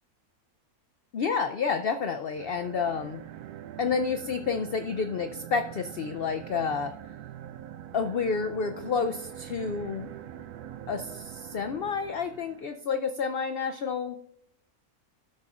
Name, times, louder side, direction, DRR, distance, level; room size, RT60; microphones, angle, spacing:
voice 1, 1.1-3.2 3.8-6.9 7.9-10.1 10.9-14.2, left 5 dB, 90° left, 8 dB, 0.5 m, -29 dB
sound 1, 2.3-12.8, right 11 dB, 90° right, 1.1 m, -44 dB
16.5 x 6.5 x 2.4 m, 0.74 s
omnidirectional pair, 1.6 m